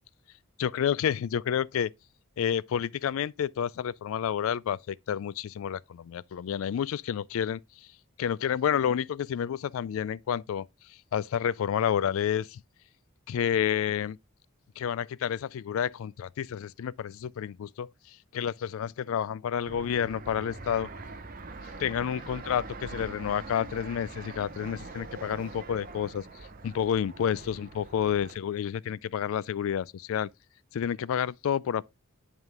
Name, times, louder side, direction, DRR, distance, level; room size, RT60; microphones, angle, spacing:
voice 1, 0.6-1.9 2.4-7.6 8.2-10.7 11.1-12.6 13.3-14.2 14.8-17.9 18.3-20.9 21.8-26.3 26.6-30.3 30.7-31.9, left 8 dB, 65° left, 0.3 m, -29 dB
Fixed-wing aircraft airplane, 19.7-28.3, right 3 dB, 40° right, 0.8 m, -43 dB
10.5 x 3.6 x 3.6 m
head